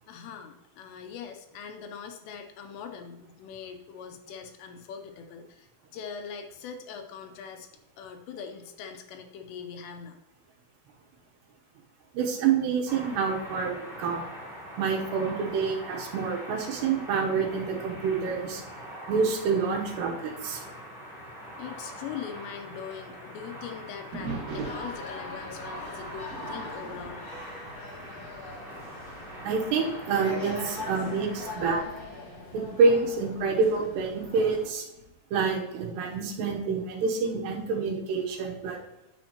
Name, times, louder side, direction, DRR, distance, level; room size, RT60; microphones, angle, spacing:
voice 1, 0.1-7.7 8.0-10.2 21.6-27.3, left 7 dB, 80° left, 5 dB, 2.8 m, -42 dB
voice 2, 12.1-14.3 14.8-18.6 19.1-20.6 29.4-31.9 32.5-34.9 35.3-38.8, right 5 dB, 75° right, 1 dB, 3.0 m, -27 dB
sound 1, 12.9-31.6, equal, 25° left, 1.0 m, -43 dB
sound 2, 24.1-28.3 28.6-28.9 29.6-29.7 30.4-33.1 34.9-35.4, right 3 dB, 50° right, 2.5 m, -42 dB
sound 3, 24.6-34.7, left 3 dB, 45° left, 1.9 m, -42 dB
10.0 x 7.5 x 2.9 m, 0.95 s
omnidirectional pair, 5.2 m